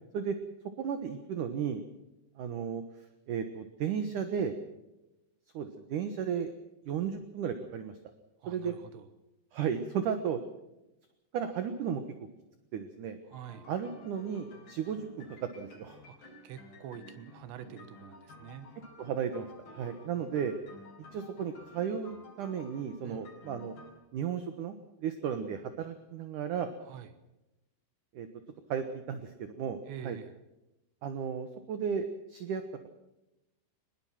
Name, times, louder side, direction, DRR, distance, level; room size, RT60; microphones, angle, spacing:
voice 1, 0.8-1.8 2.4-2.8 3.3-4.5 5.5-6.5 6.9-7.9 8.5-8.7 9.5-10.4 11.3-12.3 12.7-13.2 13.7-16.0 19.0-19.5 19.7-20.5 21.1-23.7 24.1-26.7 28.1-28.3 28.7-29.8 30.0-30.2 31.0-32.6, right 7 dB, 65° right, 9 dB, 2.3 m, -34 dB
voice 2, 8.4-9.1 13.3-13.7 16.1-18.8 23.0-23.3 26.8-27.1 29.9-30.3, right 9 dB, 90° right, 11 dB, 3.6 m, -47 dB
sound 1, 13.3-23.9, left 1 dB, 55° left, 5.8 m, -53 dB
22.5 x 21.0 x 5.9 m, 0.93 s
omnidirectional pair, 4.9 m